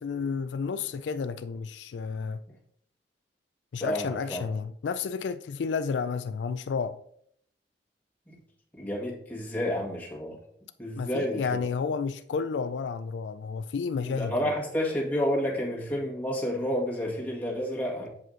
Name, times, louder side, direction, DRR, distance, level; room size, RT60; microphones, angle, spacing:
voice 1, 0.0-2.4 3.7-7.0 11.0-14.6, left 5 dB, 85° left, 0.4 m, -31 dB
voice 2, 3.8-4.4 8.3-8.4 8.8-10.4 10.8-11.7 14.0-18.1, equal, 10° left, 1.8 m, -30 dB
7.8 x 5.0 x 3.9 m
head